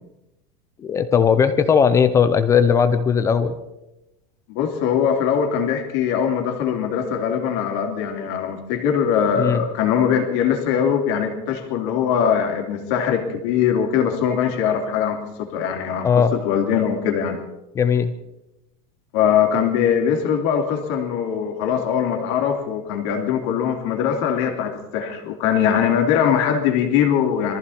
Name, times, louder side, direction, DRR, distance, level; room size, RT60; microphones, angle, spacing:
voice 1, 0.9-3.6 9.4-9.6 16.0-16.3 17.8-18.1, left 7 dB, 15° left, 10 dB, 0.5 m, -17 dB
voice 2, 4.5-17.4 19.1-27.6, left 8 dB, 45° left, 3 dB, 2.8 m, -21 dB
23.0 x 14.5 x 4.3 m, 0.90 s
supercardioid pair, 180°, 21 cm